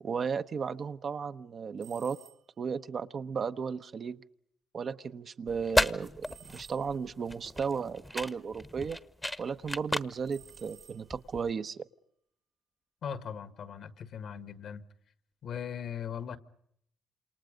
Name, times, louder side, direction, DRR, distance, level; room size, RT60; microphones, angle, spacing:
voice 1, 0.0-2.2 2.6-4.2 4.7-9.0 9.4-11.8, right 6 dB, 50° right, 9 dB, 0.9 m, -35 dB
sound 1, 1.8-2.7 6.2-7.2 10.3-11.4, right 9 dB, 75° right, 4.0 m, -56 dB
sound 2, 5.5-11.5, left 1 dB, 10° left, 1.1 m, -34 dB
voice 2, 13.0-14.8 15.4-16.4, left 8 dB, 65° left, 12 dB, 1.7 m, -39 dB
28.5 x 27.5 x 5.2 m, 0.72 s
cardioid pair, 90°, 0 cm